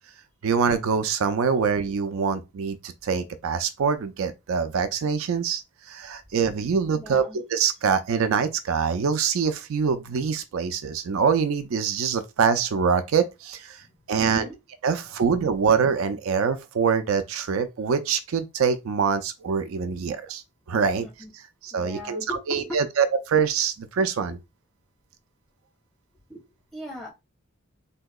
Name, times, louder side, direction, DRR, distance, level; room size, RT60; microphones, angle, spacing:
voice 1, 0.4-13.8 14.1-14.5 14.8-20.4 20.7-21.1 21.3-24.4, right 6 dB, 75° right, 0.4 m, -24 dB
voice 2, 6.9-7.4 14.2-14.5 21.2-21.3 21.7-22.8 26.3-26.4 26.7-27.1, left 1 dB, ahead, 1.3 m, -38 dB
3.6 x 2.8 x 2.3 m
head